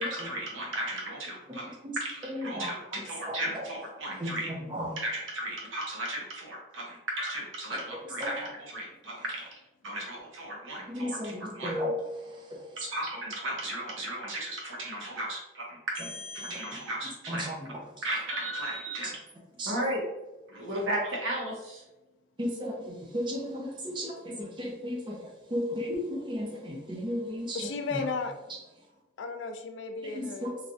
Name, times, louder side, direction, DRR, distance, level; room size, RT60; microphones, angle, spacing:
voice 1, 0.0-1.6 2.0-4.5 5.0-9.4 9.8-11.2 11.6-11.7 12.8-17.5 18.0-19.2 19.7-20.0 20.5-21.8, right 1 dB, 85° right, -2 dB, 0.9 m, -35 dB
voice 2, 1.5-2.0 2.3-3.7 3.9-5.0 7.7-7.8 8.2-8.3 9.1-9.2 10.9-12.9 17.3-18.0 19.0-19.1 19.6-19.8 22.4-28.0 30.0-30.5, equal, 25° right, -1 dB, 0.5 m, -35 dB
voice 3, 27.5-28.4 29.2-30.5, left 4 dB, 70° left, 6 dB, 0.4 m, -34 dB
3.1 x 2.4 x 2.5 m, 1.0 s
head